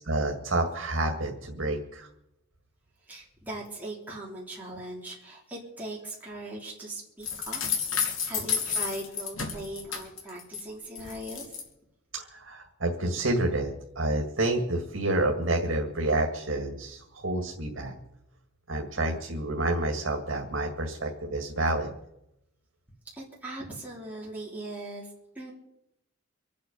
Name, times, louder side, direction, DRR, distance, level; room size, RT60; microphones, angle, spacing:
voice 1, 0.0-2.1 12.1-17.9 18.7-21.9, right 2 dB, 75° right, 2 dB, 2.1 m, -29 dB
voice 2, 3.0-7.6 8.0-11.6 23.1-25.5, right 1 dB, 10° right, -5 dB, 3.4 m, -40 dB
sound 1, 7.2-10.6 10.9-11.6, left 6 dB, 75° left, 3.3 m, -31 dB
26.0 x 8.7 x 5.4 m, 0.83 s
head